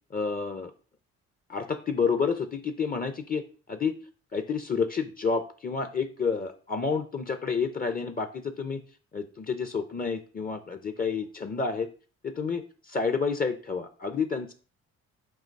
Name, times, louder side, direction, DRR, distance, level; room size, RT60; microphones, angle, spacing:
voice 1, 0.1-0.7 1.5-3.4 3.7-3.9 4.3-8.8 9.1-11.9 12.2-12.6 12.9-14.5, left 5 dB, 30° left, 9 dB, 0.7 m, -29 dB
8.1 x 2.8 x 5.2 m, 0.39 s
cardioid pair, 90°, 30 cm